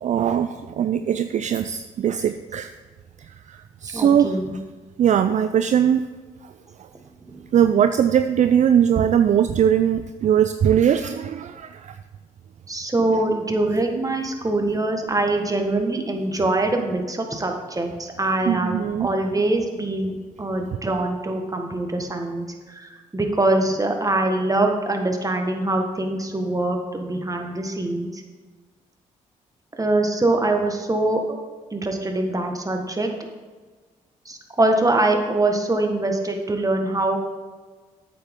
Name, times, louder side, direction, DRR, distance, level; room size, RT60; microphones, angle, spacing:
voice 1, 0.0-2.7 3.8-4.3 5.0-6.1 7.5-11.9 18.5-19.1, right 9 dB, 50° right, 10 dB, 0.4 m, -20 dB
voice 2, 3.9-4.5 7.3-7.4 12.7-28.2 29.8-31.4 31.7-33.1 34.2-37.2, right 2 dB, 20° right, 3 dB, 1.5 m, -23 dB
8.5 x 7.3 x 3.7 m, 1.4 s
hypercardioid pair, 45°, 16 cm